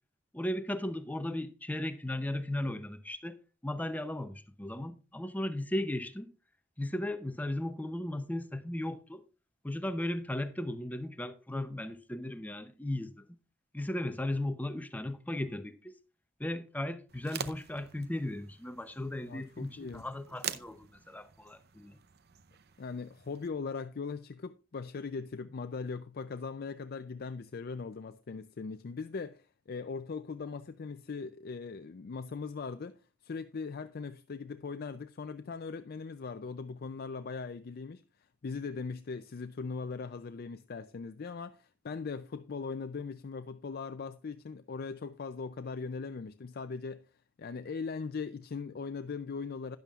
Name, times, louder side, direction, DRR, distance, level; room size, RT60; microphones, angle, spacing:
voice 1, 0.3-6.3 6.8-9.2 9.6-13.4 13.7-16.0 16.4-22.0, left 1 dB, 10° left, 0.7 m, -36 dB
sound 1, 17.1-23.5, right 8 dB, 55° right, 0.7 m, -45 dB
voice 2, 19.3-20.0 22.8-33.0 33.2-38.0 38.4-47.0 47.4-49.8, left 4 dB, 50° left, 0.4 m, -40 dB
12.5 x 10.5 x 2.4 m
head